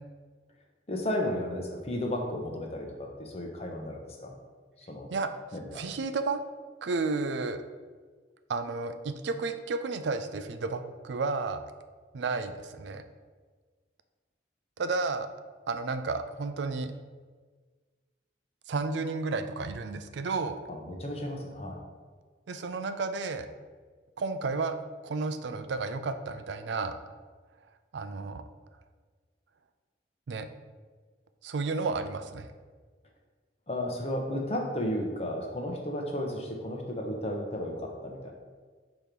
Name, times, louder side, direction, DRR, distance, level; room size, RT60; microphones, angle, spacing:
voice 1, 0.9-4.4 4.8-5.1 5.5-5.9 20.7-21.8 33.7-38.3, left 1 dB, 35° left, 1 dB, 0.8 m, -33 dB
voice 2, 5.7-6.4 6.8-7.6 8.5-11.7 12.1-13.0 14.8-15.3 15.7-16.9 18.7-20.6 22.5-23.5 24.2-24.8 25.0-27.0 27.9-28.4 30.3-30.5 31.4-32.5, right 3 dB, 75° right, 9 dB, 0.4 m, -32 dB
6.4 x 3.0 x 5.2 m, 1.5 s
head